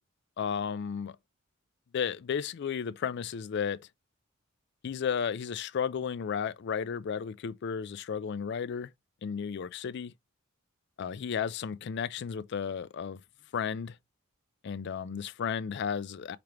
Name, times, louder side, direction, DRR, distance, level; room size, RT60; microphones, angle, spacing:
voice 1, 0.4-1.2 1.9-3.8 4.8-8.9 9.2-10.1 11.0-13.2 13.5-14.0 14.6-16.4, left 7 dB, 55° left, 0.4 m, -33 dB
4.9 x 2.9 x 3.3 m
head